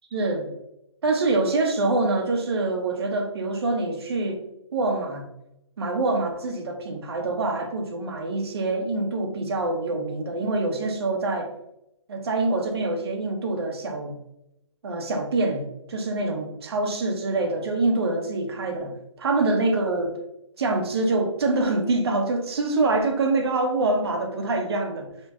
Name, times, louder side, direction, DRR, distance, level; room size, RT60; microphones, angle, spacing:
voice 1, 0.1-0.5 1.0-4.4 4.7-5.3 5.8-11.5 12.1-14.2 14.8-20.2 20.6-25.1, right 2 dB, 50° right, 4 dB, 1.0 m, -25 dB
5.2 x 2.4 x 3.6 m, 0.82 s
hypercardioid pair, 165°, 17 cm